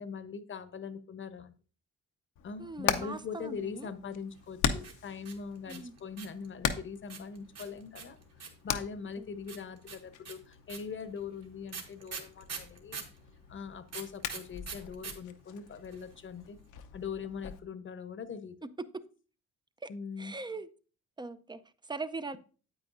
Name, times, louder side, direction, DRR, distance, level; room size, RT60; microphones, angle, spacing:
voice 1, 0.0-1.5 2.4-13.0 13.5-16.6 16.9-18.6 19.9-20.3, left 6 dB, 40° left, 0.9 m, -42 dB
Hammer, 2.4-17.6, left 8 dB, 80° left, 0.8 m, -40 dB
voice 2, 2.6-3.9 5.7-5.9 9.2-9.3 18.8-19.0 19.8-19.9 20.2-20.7 21.2-22.4, right 3 dB, 15° right, 0.5 m, -40 dB
sound 1, 4.8-6.5 7.1-8.7 9.5-13.2 13.9-15.1 15.4-15.5 15.7-16.2, right 5 dB, 55° right, 1.9 m, -42 dB
9.0 x 8.4 x 2.5 m
cardioid pair, 90°, 30 cm